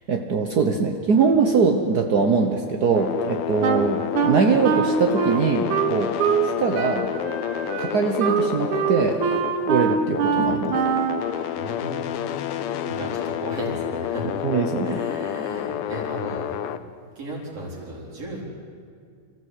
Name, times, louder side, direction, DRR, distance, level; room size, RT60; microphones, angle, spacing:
voice 1, 0.1-6.1 6.4-7.1 7.8-9.2 9.7-10.8 14.4-15.0, right 5 dB, 70° right, 3 dB, 0.9 m, -22 dB
sound 1, 2.9-16.8, left 10 dB, 75° left, 1.3 m, -29 dB
Wind instrument woodwind instrument, 3.6-6.5 6.7-11.3, right 7 dB, 90° right, 2.8 m, -24 dB
voice 2, 11.6-14.5 14.8-16.5 17.2-18.4, right 1 dB, 55° right, -3 dB, 5.2 m, -35 dB
27.0 x 14.5 x 8.1 m, 2.2 s
omnidirectional pair, 3.3 m